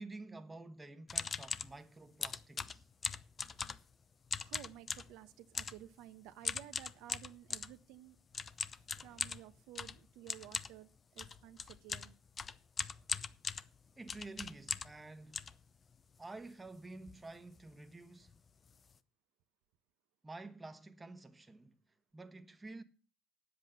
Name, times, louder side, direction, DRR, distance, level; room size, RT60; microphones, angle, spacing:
voice 1, 0.0-2.9 14.0-15.5 16.2-18.4 20.2-21.8 22.1-22.8, right 2 dB, 15° right, 1.2 m, -50 dB
sound 1, 1.1-1.7 2.2-3.9 4.3-5.1 5.6-5.8 6.5-7.7 8.3-15.0 15.3-16.2 16.7-16.8 17.0-17.3 17.5-17.7 18.3-18.4 18.7-18.9, left 5 dB, 35° left, 0.7 m, -40 dB
voice 2, 4.4-8.2 9.0-12.1, right 13 dB, 80° right, 1.0 m, -54 dB
9.2 x 7.9 x 7.9 m
cardioid pair, 100°, 0 cm